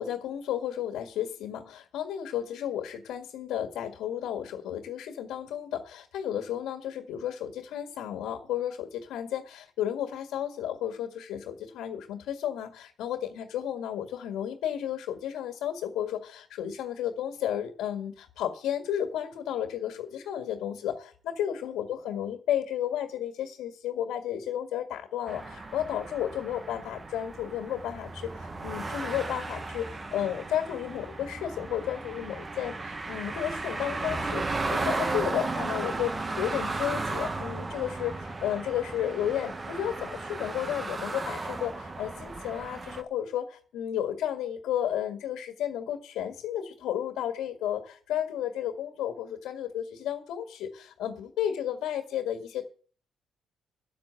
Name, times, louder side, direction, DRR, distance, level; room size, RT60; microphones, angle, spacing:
voice 1, 0.0-52.6, left 10 dB, 90° left, 6 dB, 1.8 m, -33 dB
sound 1, 25.3-43.0, right 3 dB, 30° right, 1.3 m, -35 dB
8.8 x 8.5 x 9.0 m, 0.43 s
cardioid pair, 90°, 0 cm